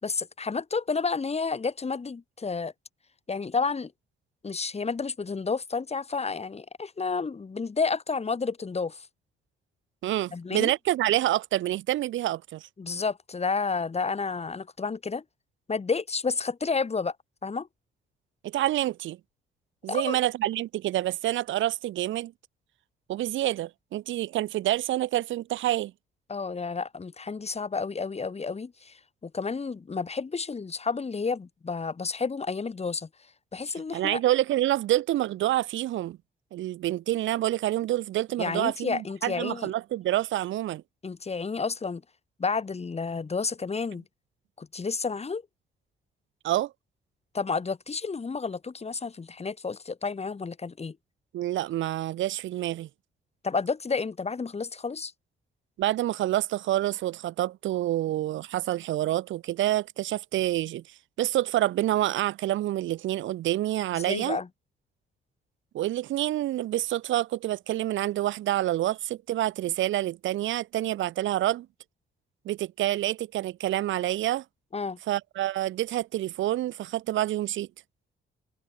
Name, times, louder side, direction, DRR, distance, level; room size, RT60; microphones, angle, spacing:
voice 1, 0.0-2.7 3.3-3.9 4.4-9.1 10.3-10.7 12.8-15.2 15.7-17.2 17.4-17.7 19.9-20.2 26.3-33.1 33.5-34.2 38.4-39.7 41.0-42.0 42.4-44.0 44.6-45.4 47.3-51.0 53.4-55.1 64.0-64.5 74.7-75.0, left 4 dB, 30° left, 5.7 m, -31 dB
voice 2, 10.0-12.7 18.4-19.2 19.8-22.3 23.1-25.9 33.9-36.2 36.5-40.8 46.4-46.7 51.3-52.9 55.8-60.8 61.2-64.4 65.7-71.7 72.4-74.4 75.1-77.7, right 14 dB, 75° right, 0.9 m, -27 dB
open air
cardioid pair, 90°, 20 cm